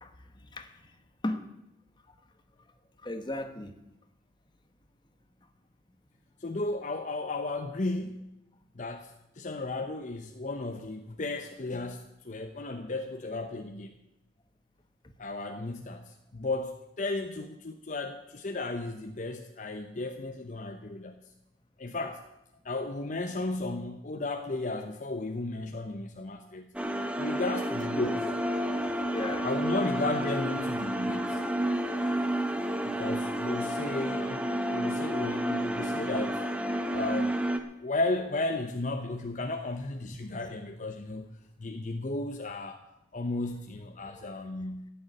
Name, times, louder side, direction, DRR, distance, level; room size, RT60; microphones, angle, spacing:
voice 1, 0.0-0.8 1.2-1.5 2.1-2.2 3.0-3.7 27.9-28.1 28.6-29.5 33.7-33.8 40.1-40.2 44.0-44.2, left 1 dB, 25° left, 7 dB, 1.3 m, -37 dB
voice 2, 6.4-8.3 8.8-9.1 9.4-13.9 15.2-21.2 21.8-22.2 22.6-26.7 27.2-28.2 29.4-31.4 32.8-36.4 36.9-37.3 37.8-41.3 41.6-42.8 43.1-44.9, left 2 dB, 45° left, 6 dB, 0.8 m, -34 dB
sound 1, 26.7-37.6, right 1 dB, 5° right, 0.9 m, -30 dB
15.0 x 7.0 x 9.0 m, 0.88 s
head